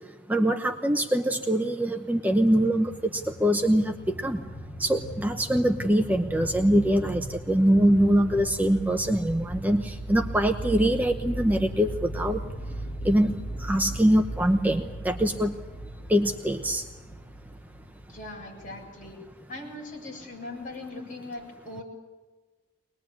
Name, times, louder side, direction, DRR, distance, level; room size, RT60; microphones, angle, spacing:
voice 1, 0.3-3.9 4.2-4.4 4.8-12.4 13.0-15.6 16.1-16.8, equal, 10° right, 5 dB, 0.8 m, -23 dB
sound 1, 2.3-19.3, right 1 dB, 60° left, 2.2 m, -38 dB
voice 2, 18.1-19.2 19.5-21.8, left 2 dB, 45° left, -1 dB, 7.6 m, -40 dB
24.0 x 20.5 x 8.7 m, 1.3 s
head